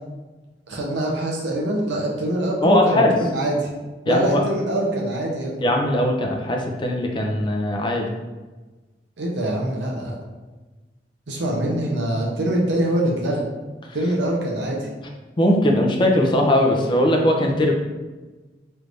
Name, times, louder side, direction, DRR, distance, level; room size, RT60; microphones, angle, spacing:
voice 1, 0.7-3.7 4.0-5.6 9.2-10.2 11.3-13.4 13.9-14.9, right 1 dB, 80° right, -2 dB, 0.7 m, -24 dB
voice 2, 2.6-3.1 4.1-4.4 5.6-8.1 15.4-17.7, left 1 dB, 25° left, 1 dB, 0.4 m, -19 dB
3.2 x 2.6 x 3.3 m, 1.2 s
head